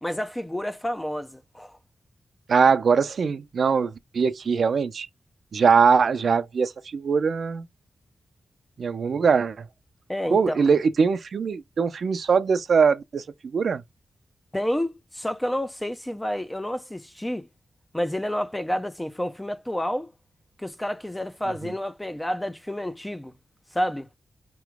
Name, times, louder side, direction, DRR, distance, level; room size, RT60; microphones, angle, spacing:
voice 1, 0.0-1.8 10.1-10.6 14.5-17.5 17.9-20.1 20.6-23.3 23.7-24.1, equal, 10° left, 0.5 m, -29 dB
voice 2, 2.5-5.1 5.5-7.6 8.8-9.7 10.3-13.2 13.5-13.8, right 5 dB, 75° right, 0.5 m, -21 dB
4.9 x 3.1 x 3.4 m
cardioid pair, 70°, 0 cm